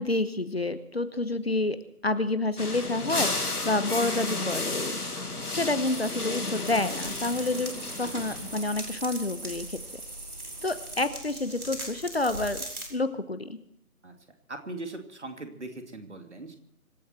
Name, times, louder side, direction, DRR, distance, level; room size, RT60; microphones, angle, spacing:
voice 1, 0.0-1.8 2.0-5.2 5.5-7.7 8.0-9.8 10.6-12.6 12.9-13.6, left 2 dB, 40° left, 12 dB, 1.1 m, -29 dB
sound 1, 2.6-8.8, left 2 dB, 75° left, 2.0 m, -33 dB
sound 2, 5.8-11.1, right 2 dB, 30° right, 1.3 m, -43 dB
sound 3, 6.6-12.9, right 1 dB, 70° right, 4.9 m, -41 dB
voice 2, 14.5-16.5, right 2 dB, 50° right, 5 dB, 2.7 m, -40 dB
25.5 x 12.0 x 4.5 m, 0.72 s
figure-of-eight pair, 160°, 45 cm